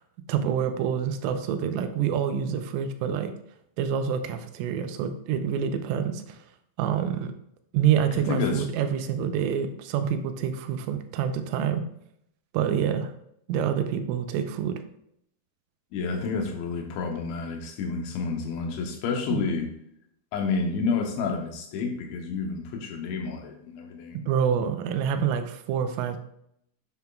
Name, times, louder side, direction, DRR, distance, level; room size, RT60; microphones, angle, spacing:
voice 1, 0.3-3.3 3.8-6.4 6.8-7.3 7.7-11.8 12.5-13.1 13.5-14.8 19.3-19.5 24.3-26.2, right 8 dB, 90° right, 8 dB, 3.3 m, -27 dB
voice 2, 8.1-8.7 15.9-19.7 20.3-24.2, left 4 dB, 80° left, 3 dB, 3.2 m, -29 dB
9.3 x 7.1 x 2.3 m, 0.73 s
omnidirectional pair, 5.6 m